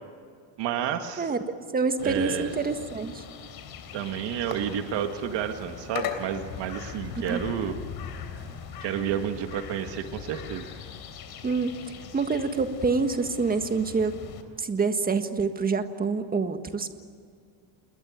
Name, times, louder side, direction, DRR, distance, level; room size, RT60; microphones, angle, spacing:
voice 1, 0.6-1.3 2.0-2.5 3.9-7.8 8.8-10.7, right 9 dB, 60° right, 6 dB, 1.8 m, -30 dB
voice 2, 1.7-3.2 7.3-7.4 11.4-11.7 12.1-14.2 14.6-16.9, right 4 dB, 20° right, 8 dB, 1.6 m, -26 dB
sound 1, 2.0-14.4, left 7 dB, 50° left, 3.6 m, -40 dB
29.0 x 21.0 x 9.5 m, 2.2 s
cardioid pair, 145°, 48 cm